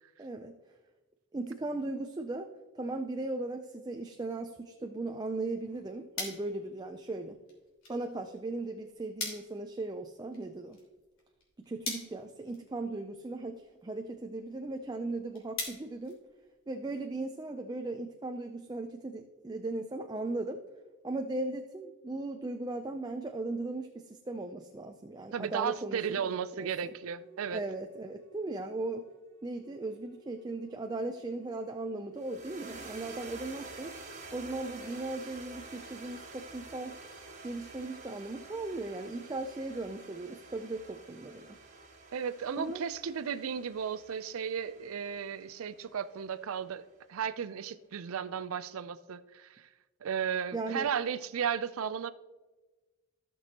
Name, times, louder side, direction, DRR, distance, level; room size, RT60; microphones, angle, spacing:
voice 1, 0.2-0.6 1.3-7.4 7.9-10.8 11.6-16.2 16.7-20.6 21.0-26.2 26.6-26.7 27.5-29.1 29.4-33.9 34.3-37.0 37.4-41.6 42.6-42.8 50.5-50.9, right 2 dB, 20° right, 6 dB, 0.4 m, -37 dB
sound 1, 5.6-16.9, left 3 dB, 65° left, 3.0 m, -45 dB
voice 2, 25.3-27.6 42.1-49.7 50.0-52.1, right 7 dB, 85° right, 14 dB, 0.4 m, -35 dB
sound 2, 26.7-32.5, right 4 dB, 65° right, 1.6 m, -60 dB
sound 3, 32.2-46.6, right 3 dB, 35° right, 1.5 m, -49 dB
15.5 x 6.2 x 2.9 m, 1.2 s
head